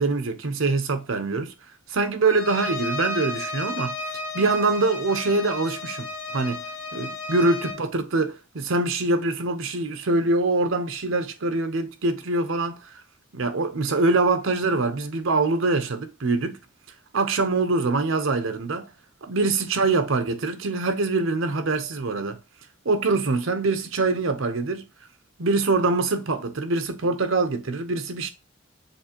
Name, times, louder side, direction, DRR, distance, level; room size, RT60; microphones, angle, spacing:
voice 1, 0.0-1.5 1.9-3.9 4.3-6.6 6.9-13.0 13.3-16.6 17.1-18.9 19.2-22.4 22.8-24.9 25.4-28.3, right 3 dB, 80° right, 0.7 m, -24 dB
Bowed string instrument, 2.2-7.8, left 2 dB, 90° left, 1.6 m, -33 dB
7.0 x 2.5 x 2.8 m
head